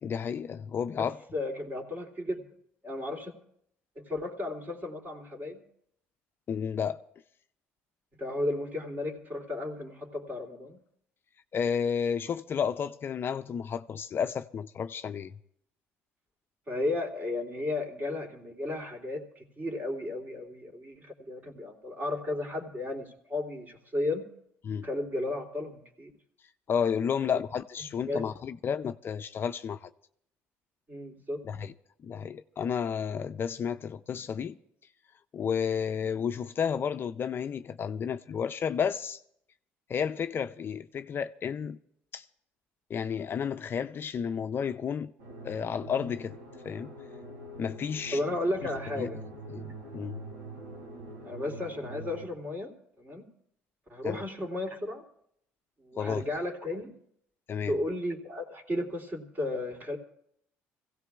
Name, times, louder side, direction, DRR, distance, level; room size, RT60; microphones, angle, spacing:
voice 1, 0.0-1.2 6.5-7.0 11.5-15.4 24.6-24.9 26.7-29.9 31.4-31.7 32.0-34.6 35.3-39.2 39.9-41.8 42.1-42.3 42.9-45.1 45.4-46.4 46.6-46.9 47.6-48.2 49.0-49.1 49.5-50.2 54.0-54.2 56.0-56.2 57.5-57.8, left 7 dB, 45° left, 0.5 m, -32 dB
voice 2, 1.3-2.4 2.8-3.3 4.0-5.6 8.2-10.8 16.7-24.3 24.8-26.1 27.2-27.3 28.1-28.2 30.9-31.4 48.1-49.2 51.2-53.3 53.9-55.0 55.8-56.9 57.7-60.0, left 2 dB, 35° right, 3.0 m, -34 dB
sound 1, 45.2-52.3, right 2 dB, 80° right, 3.3 m, -44 dB
25.5 x 16.5 x 2.4 m
supercardioid pair, 80°, 5 cm